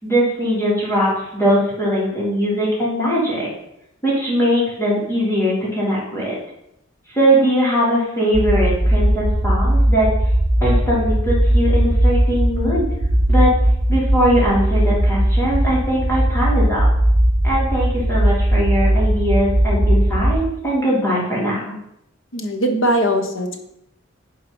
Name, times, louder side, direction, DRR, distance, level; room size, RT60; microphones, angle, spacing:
voice 1, 0.0-3.5 4.0-6.3 7.1-10.1 10.6-12.9 13.3-13.5 13.9-16.9 17.4-21.7, equal, 15° left, -7 dB, 3.5 m, -20 dB
sound 1, 8.3-20.3, right 1 dB, 65° right, 2.9 m, -18 dB
voice 2, 22.3-23.6, equal, 75° left, 5 dB, 1.4 m, -20 dB
11.0 x 4.7 x 5.5 m, 0.79 s
head